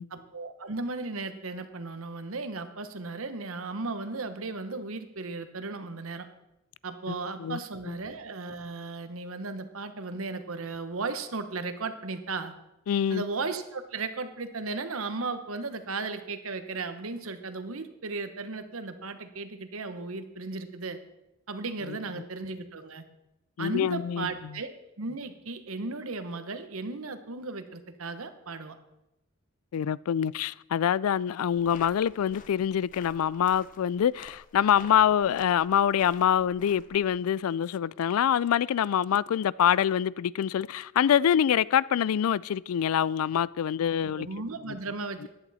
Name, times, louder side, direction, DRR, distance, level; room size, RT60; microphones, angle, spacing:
voice 1, 0.1-6.3 6.8-12.5 13.1-21.0 21.5-23.0 23.6-28.8 43.8-45.3, right 3 dB, 80° right, 1.1 m, -36 dB
voice 2, 7.1-7.6 7.9-8.0 12.9-13.2 23.6-24.5 29.7-44.3 44.7-44.8 45.2-45.3, left 9 dB, 85° left, 0.3 m, -25 dB
sound 1, 31.5-37.1, left 4 dB, 35° left, 0.8 m, -50 dB
15.0 x 11.0 x 4.2 m
head